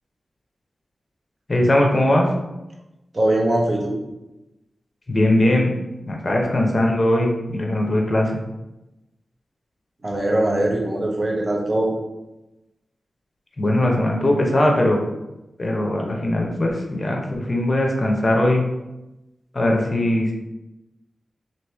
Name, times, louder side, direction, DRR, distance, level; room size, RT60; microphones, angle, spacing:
voice 1, 1.5-2.3 5.1-5.7 6.1-8.4 13.6-15.0 15.6-18.6 19.5-20.3, left 1 dB, 40° left, 1 dB, 0.7 m, -20 dB
voice 2, 3.1-4.0 10.0-11.9, right 1 dB, 45° right, -1 dB, 0.8 m, -21 dB
3.0 x 2.7 x 3.4 m, 0.98 s
cardioid pair, 50°, 0 cm